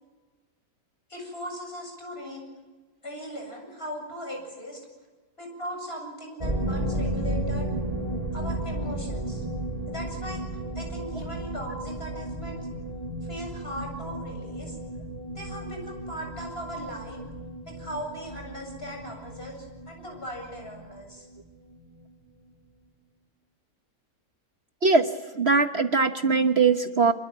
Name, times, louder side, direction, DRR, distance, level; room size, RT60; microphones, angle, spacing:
voice 1, 1.1-2.4 3.0-4.8 5.4-7.7 8.3-9.4 9.9-10.4 10.7-12.7 13.3-14.8 15.3-17.2 17.7-21.3, equal, 40° left, 2 dB, 8.0 m, -38 dB
sound 1, 6.4-21.8 22.0-22.1 22.5-22.6, right 1 dB, 25° right, 5.5 m, -34 dB
voice 2, 25.3-27.1, right 4 dB, 45° right, 7 dB, 1.4 m, -21 dB
28.0 x 22.0 x 9.3 m, 1.3 s
omnidirectional pair, 1.5 m